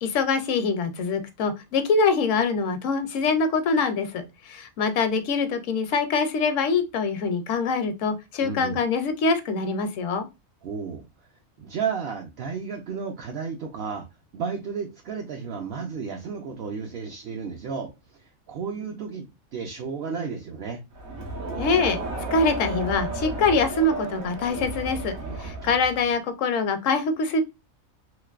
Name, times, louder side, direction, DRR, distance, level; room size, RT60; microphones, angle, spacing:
voice 1, 0.0-10.3 21.6-22.0 22.3-25.1 25.4-27.4, left 4 dB, 70° left, 0.9 m, -24 dB
voice 2, 8.4-8.8 10.6-11.0 11.6-14.0 14.3-17.9 18.5-19.3 19.5-20.8 25.2-25.8, right 6 dB, 60° right, 0.7 m, -33 dB
Crowd, 20.9-26.1, right 3 dB, 80° right, 1.3 m, -33 dB
3.1 x 2.8 x 2.3 m
omnidirectional pair, 1.4 m